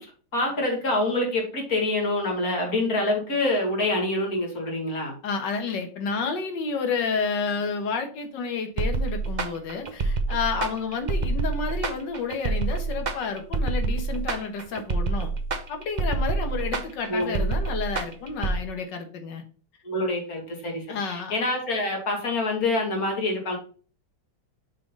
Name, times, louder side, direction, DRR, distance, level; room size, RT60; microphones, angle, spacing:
voice 1, 0.0-5.2 17.1-17.5 19.8-23.6, left 2 dB, 50° left, 0 dB, 2.6 m, -26 dB
voice 2, 5.2-15.3 15.7-19.4 20.9-21.4, left 5 dB, 70° left, 5 dB, 1.9 m, -30 dB
sound 1, 8.8-18.6, right 3 dB, 80° right, 0.4 m, -27 dB
6.6 x 3.8 x 5.3 m, 0.40 s
omnidirectional pair, 2.0 m